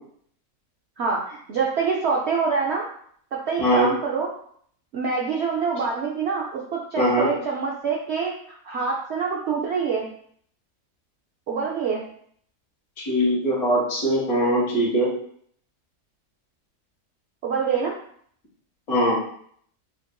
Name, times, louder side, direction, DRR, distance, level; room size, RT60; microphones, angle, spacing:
voice 1, 1.0-2.9 3.3-4.3 4.9-10.0 11.5-12.0 17.4-17.9, right 5 dB, 80° right, -2 dB, 0.6 m, -26 dB
voice 2, 7.0-7.3 13.0-15.1 18.9-19.2, equal, 50° left, -9 dB, 1.5 m, -21 dB
5.3 x 2.5 x 2.2 m, 0.63 s
omnidirectional pair, 1.7 m